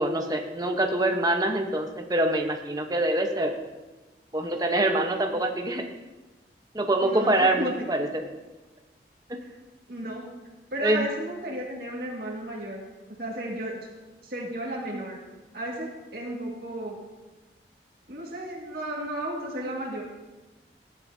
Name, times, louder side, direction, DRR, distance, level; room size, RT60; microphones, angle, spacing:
voice 1, 0.0-3.5 4.3-5.8 6.7-8.2 9.3-9.4 10.8-11.1, right 1 dB, 20° right, 3 dB, 1.0 m, -25 dB
voice 2, 7.0-7.9 9.4-9.5 9.9-10.3 10.7-12.9 13.2-13.7 14.2-15.2 15.5-17.0 18.1-20.0, right 1 dB, 60° right, -3 dB, 2.0 m, -33 dB
14.5 x 10.0 x 2.8 m, 1.2 s
head